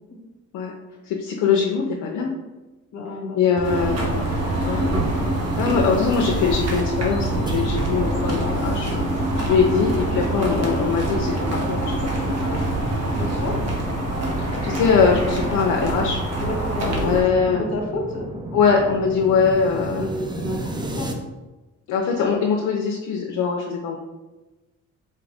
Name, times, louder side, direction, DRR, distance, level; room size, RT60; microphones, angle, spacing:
voice 1, 1.0-2.3 3.3-4.9 5.6-8.9 9.4-12.1 14.4-16.2 16.9-17.7 18.5-20.1 21.9-24.0, left 5 dB, 80° left, 0 dB, 0.5 m, -22 dB
voice 2, 2.9-3.5 13.1-13.5 16.4-17.2 17.4-18.2 19.9-21.1, left 2 dB, 60° left, 1 dB, 1.0 m, -30 dB
sound 1, 3.6-17.2, right 1 dB, 55° right, 1.1 m, -25 dB
sound 2, 3.6-13.6, right 5 dB, 80° right, 0.5 m, -31 dB
sound 3, 5.4-21.1, right 2 dB, 15° right, 0.4 m, -35 dB
4.1 x 2.5 x 3.3 m, 1.1 s
cardioid pair, 90°, 30 cm